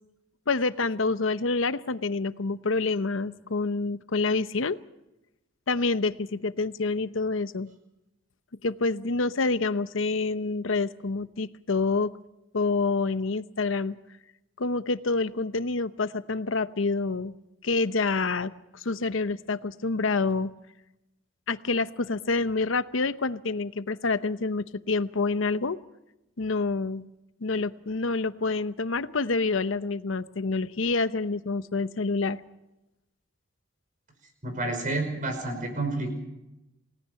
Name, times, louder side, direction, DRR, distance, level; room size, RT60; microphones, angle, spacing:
voice 1, 0.5-4.8 5.7-7.7 8.6-12.1 12.5-14.0 14.6-17.3 17.6-20.5 21.5-25.8 26.4-27.0 27.4-32.4, left 3 dB, 85° left, 13 dB, 0.9 m, -27 dB
voice 2, 34.4-36.1, right 2 dB, 45° right, 5 dB, 5.4 m, -29 dB
28.5 x 18.0 x 5.8 m, 0.93 s
head